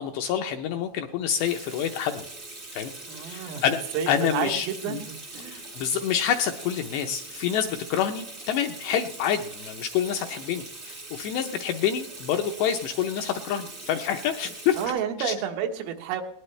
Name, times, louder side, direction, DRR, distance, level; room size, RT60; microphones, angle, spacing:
voice 1, 0.0-2.3 2.7-2.9 3.2-3.8 4.1-5.0 5.5-14.9 15.2-15.3, left 9 dB, 80° left, 5 dB, 2.6 m, -27 dB
Water tap faucet / Sink (filling or washing), 1.4-14.9, right 2 dB, 40° right, 0.9 m, -42 dB
voice 2, 3.1-3.6 3.9-5.6 14.8-16.2, right 8 dB, 85° right, 5 dB, 4.0 m, -30 dB
20.0 x 18.5 x 3.3 m, 0.70 s
omnidirectional pair, 5.7 m